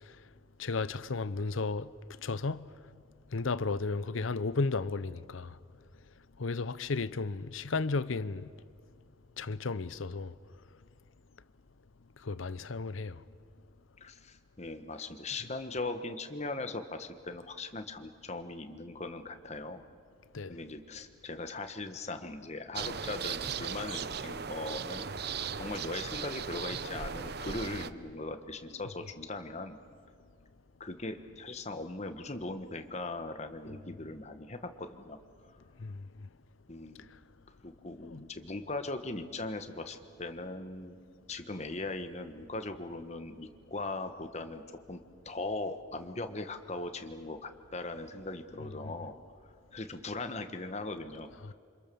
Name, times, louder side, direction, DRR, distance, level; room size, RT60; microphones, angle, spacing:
voice 1, 0.6-1.9 2.2-2.7 3.3-5.5 6.4-8.5 9.4-10.3 12.2-13.2 20.3-20.6 35.8-36.0 38.0-38.2 48.8-48.9 51.4-51.5, left 3 dB, 80° left, 0.7 m, -34 dB
voice 2, 14.0-19.8 20.5-25.0 25.6-29.8 30.8-35.2 36.7-37.0 37.6-41.0 41.3-44.6 44.9-45.0 45.2-49.1 49.7-51.5, left 2 dB, 35° left, 1.4 m, -39 dB
sound 1, 22.7-27.9, right 6 dB, 55° right, 0.8 m, -37 dB
27.5 x 26.0 x 7.0 m
head